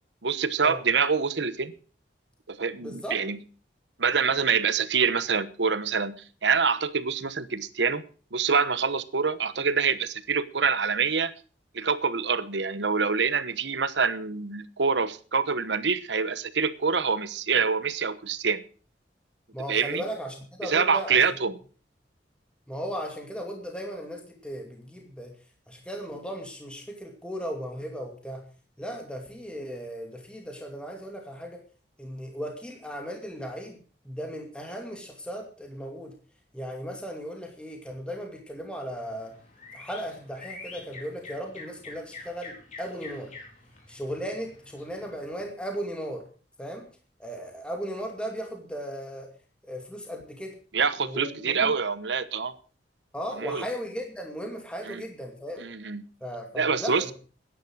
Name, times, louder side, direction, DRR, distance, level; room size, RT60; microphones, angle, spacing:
voice 1, 0.2-1.7 2.5-3.4 4.0-6.2 6.4-8.0 8.3-11.3 11.7-18.6 19.7-20.0 20.6-21.6 50.7-52.5 53.4-53.6 54.9-55.0 55.6-56.0 56.6-57.1, right 5 dB, 85° right, 14 dB, 1.1 m, -26 dB
voice 2, 2.8-3.2 19.5-21.2 22.7-25.4 25.7-28.4 28.8-31.6 32.0-33.8 34.0-36.1 36.5-39.4 39.7-43.3 43.9-46.3 46.6-46.9 47.2-49.3 49.6-50.5 51.0-51.7 53.1-55.6 56.2-57.1, equal, 5° left, 2 dB, 2.5 m, -36 dB
sound 1, 38.9-45.5, left 3 dB, 45° left, 4.8 m, -47 dB
13.5 x 10.5 x 6.3 m, 0.39 s
head